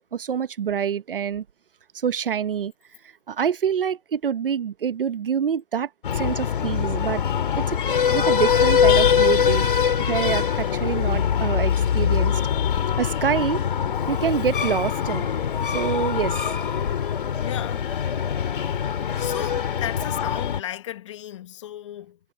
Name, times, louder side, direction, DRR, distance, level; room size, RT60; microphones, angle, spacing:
voice 1, 0.0-1.4 1.9-2.7 3.3-7.2 7.6-7.8 8.1-9.7 10.1-12.4 13.0-13.6 14.1-15.2 15.7-16.4, right 8 dB, 55° right, 1.1 m, -26 dB
Breathing, 6.0-20.6, left 8 dB, 50° left, 2.8 m, -23 dB
voice 2, 17.4-18.2 19.2-22.2, left 12 dB, 25° left, 1.4 m, -35 dB
hypercardioid pair, 165°, 34 cm